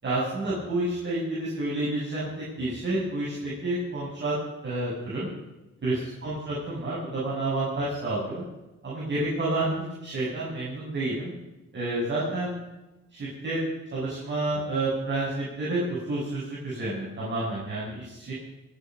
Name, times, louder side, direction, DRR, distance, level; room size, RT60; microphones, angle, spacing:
voice 1, 0.0-4.3 4.6-5.3 5.8-8.4 8.8-9.7 10.0-11.3 11.7-12.6 13.1-13.6 13.9-18.3, right 2 dB, 35° right, -7 dB, 7.7 m, -29 dB
24.0 x 9.8 x 5.5 m, 1.0 s
cardioid pair, 90°, 30 cm